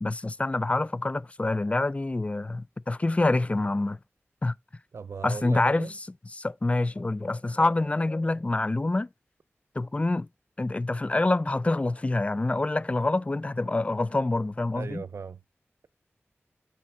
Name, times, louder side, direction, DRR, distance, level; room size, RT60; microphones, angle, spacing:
voice 1, 0.0-4.0 4.4-4.5 5.2-5.9 6.4-9.1 9.8-10.3 10.6-15.0, left 2 dB, 30° left, 0.4 m, -26 dB
voice 2, 4.9-5.9 14.8-15.4, right 5 dB, 75° right, 0.4 m, -38 dB
8.6 x 4.2 x 4.4 m
wide cardioid pair, 80°, 5 cm